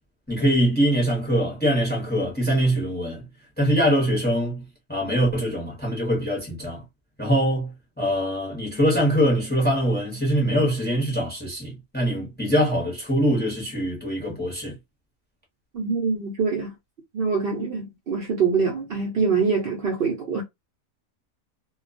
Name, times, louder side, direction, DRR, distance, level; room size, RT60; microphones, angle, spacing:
voice 1, 0.3-3.2 3.6-4.6 4.9-6.8 7.2-7.7 8.0-14.8, equal, 10° left, 0.6 m, -23 dB
voice 2, 15.7-16.7 17.1-20.4, right 5 dB, 60° right, 0.7 m, -24 dB
2.2 x 2.2 x 2.5 m
omnidirectional pair, 1.4 m